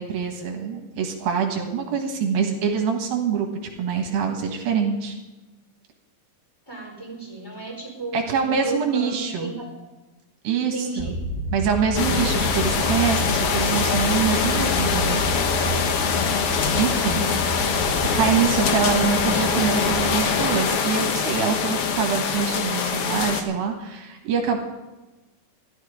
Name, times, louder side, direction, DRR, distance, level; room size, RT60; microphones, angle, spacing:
voice 1, 0.0-3.5 3.8-5.2 8.1-9.5 10.4-11.2 11.5-15.2 16.8-17.3 18.2-24.6, right 6 dB, 75° right, 2 dB, 3.3 m, -25 dB
voice 2, 6.7-9.6 10.7-11.1, right 4 dB, 5° left, -2 dB, 4.1 m, -33 dB
sound 1, 11.0-21.1, equal, 30° left, 1.3 m, -30 dB
sound 2, 12.0-23.4, left 6 dB, 70° left, 1.3 m, -23 dB
14.0 x 12.0 x 5.0 m, 1.1 s
omnidirectional pair, 4.2 m